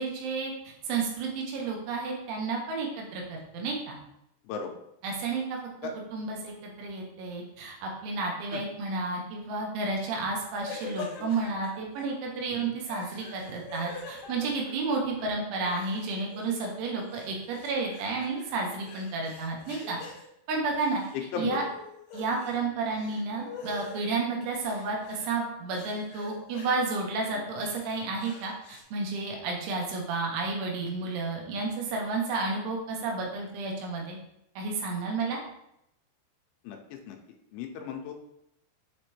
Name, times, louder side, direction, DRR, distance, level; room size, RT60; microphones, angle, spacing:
voice 1, 0.0-4.0 5.0-5.6 6.1-20.0 20.5-21.0 21.4-21.6 22.1-34.2 34.6-35.4, right 3 dB, 80° right, 0 dB, 3.5 m, -31 dB
sound 1, 10.6-12.0 12.8-15.2 15.5-16.8 17.1-20.2 20.7-21.2 21.5-22.6 22.9-24.0 24.6-25.4 25.7-26.7 27.3-28.8, left 4 dB, 70° left, 3.2 m, -44 dB
voice 2, 37.5-38.1, left 6 dB, 85° left, 3 dB, 3.0 m, -35 dB
7.4 x 5.1 x 3.0 m, 0.80 s
omnidirectional pair, 5.6 m